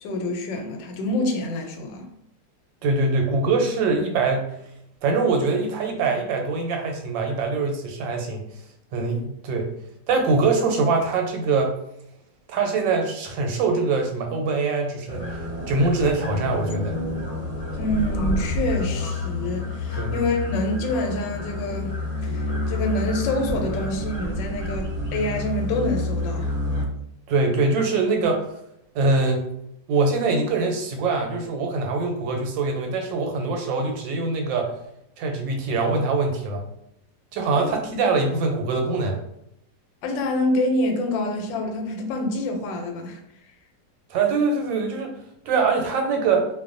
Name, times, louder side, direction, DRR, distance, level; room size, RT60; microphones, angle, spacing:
voice 1, 0.0-2.1 17.7-22.0 22.2-26.5 37.6-37.7 40.0-43.2, left 2 dB, 85° left, 3 dB, 1.3 m, -27 dB
voice 2, 2.8-4.5 5.0-8.4 8.9-9.7 10.1-11.8 12.5-16.9 20.0-20.1 27.3-28.5 28.9-29.4 29.9-34.7 35.2-36.6 37.3-39.2 44.1-45.2 45.5-46.5, right 3 dB, 85° right, 3 dB, 1.3 m, -23 dB
sound 1, 15.1-26.9, left 2 dB, 30° left, 0.9 m, -28 dB
2.8 x 2.1 x 2.4 m, 0.77 s
omnidirectional pair, 1.9 m